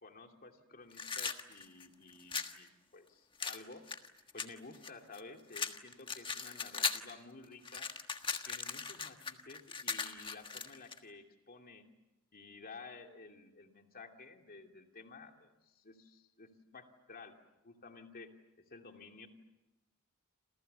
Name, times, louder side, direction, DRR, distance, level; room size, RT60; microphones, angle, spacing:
voice 1, 0.0-3.8 4.3-7.9 8.5-11.9 12.3-17.4 17.6-18.3 18.6-19.3, left 3 dB, 45° left, 4 dB, 2.7 m, -53 dB
sound 1, 0.9-2.6 3.4-5.2 5.5-7.1 7.4-11.0, left 5 dB, 25° left, 1.4 m, -38 dB
29.0 x 28.0 x 6.9 m, 0.98 s
head